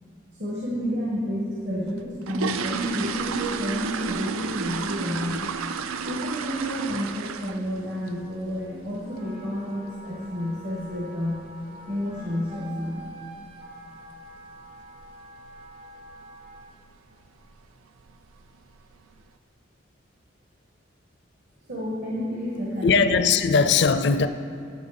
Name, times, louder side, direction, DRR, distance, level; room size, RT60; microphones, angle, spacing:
voice 1, 0.4-5.4 6.0-11.4 11.9-13.0 21.7-23.1, equal, 50° right, -5 dB, 1.5 m, -30 dB
sound 1, 1.9-7.8 8.1-8.4 8.7-8.8 9.2-9.3 9.7-9.9 10.2-10.3 10.9-11.0 11.2-11.4 11.9-12.2 12.5-12.6 13.0-13.2 13.5-13.6 14.0-14.1 14.7-15.1 15.4-15.7 16.1-16.2 16.6-16.7 17.4-17.6 18.0-18.5 18.9-19.0, right 5 dB, 90° right, 0.4 m, -32 dB
Wind instrument woodwind instrument, 9.0-16.7, right 1 dB, 30° right, 0.9 m, -46 dB
voice 2, 22.8-24.3, left 5 dB, 55° left, 10 dB, 0.4 m, -19 dB
13.5 x 6.6 x 4.2 m, 2.8 s
head